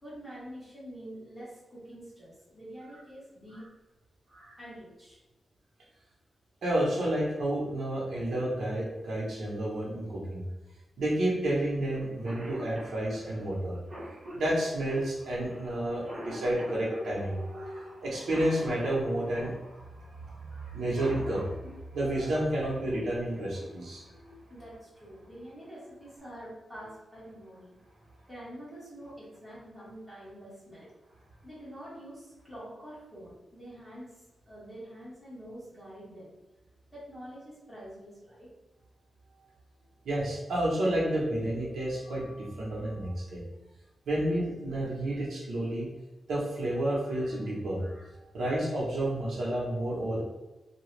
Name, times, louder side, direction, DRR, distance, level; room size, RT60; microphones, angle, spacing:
voice 1, 0.0-3.7 4.6-5.2 24.5-27.8 28.3-30.9 31.4-36.3 36.9-38.5, equal, 5° left, -10 dB, 1.4 m, -46 dB
voice 2, 6.6-10.4 11.0-13.8 14.3-21.5 21.9-24.3 40.0-43.4 44.1-45.9 46.3-48.0 48.3-50.2, right 1 dB, 75° right, -5 dB, 0.9 m, -30 dB
Cough, 11.9-12.0 12.2-19.6 20.7-21.7 23.4-23.5 24.5-24.8 25.2-25.3 25.7-26.2, equal, 40° right, 0.9 m, -44 dB
2.8 x 2.3 x 3.2 m, 1.1 s
wide cardioid pair, 170°, 0 cm